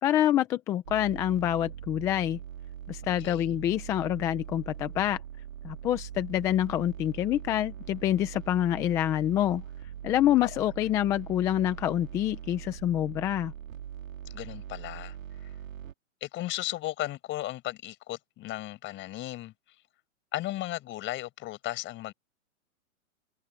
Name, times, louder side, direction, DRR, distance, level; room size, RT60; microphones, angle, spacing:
voice 1, 0.0-2.4 2.9-5.2 5.6-9.6 10.0-13.5, left 12 dB, 10° left, 0.3 m, -27 dB
sound 1, 0.8-15.9, right 10 dB, 75° right, 2.7 m, -42 dB
voice 2, 3.0-3.6 10.4-10.5 14.3-15.2 16.2-19.5 20.3-22.1, left 15 dB, 30° left, 5.9 m, -35 dB
hypercardioid pair, 130°, 40 cm